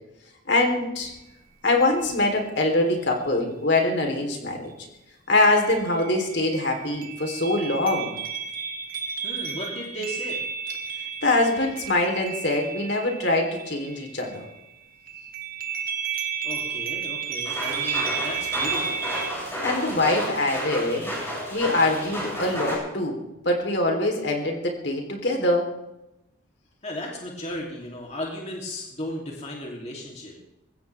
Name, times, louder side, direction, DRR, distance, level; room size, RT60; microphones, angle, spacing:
voice 1, 0.5-1.1 1.6-4.7 5.3-8.1 11.2-14.5 19.6-21.1 21.5-23.2 23.5-25.7, left 2 dB, 60° left, 2 dB, 3.8 m, -23 dB
sound 1, 1.1-1.2 1.8-2.4 5.6-14.7 15.1-19.3, right 6 dB, 45° right, 1.9 m, -32 dB
voice 2, 9.2-10.4 16.4-19.1 26.8-30.4, left 1 dB, 35° left, -2 dB, 3.3 m, -35 dB
sound 2, 17.4-22.8, equal, 15° left, 7.7 m, -32 dB
22.5 x 16.5 x 3.6 m, 0.92 s
head